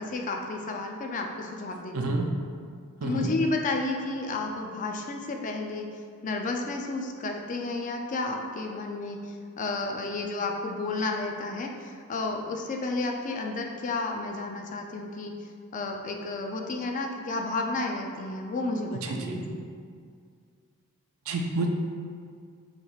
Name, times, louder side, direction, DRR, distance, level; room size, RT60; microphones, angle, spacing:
voice 1, 0.0-2.2 3.0-5.9 6.2-15.3 15.7-19.6, left 3 dB, 35° left, 2 dB, 0.4 m, -32 dB
voice 2, 1.9-2.3 3.0-3.3 19.0-19.4 21.3-21.7, right 3 dB, 70° right, 2 dB, 0.5 m, -29 dB
6.5 x 3.1 x 2.4 m, 2.2 s
head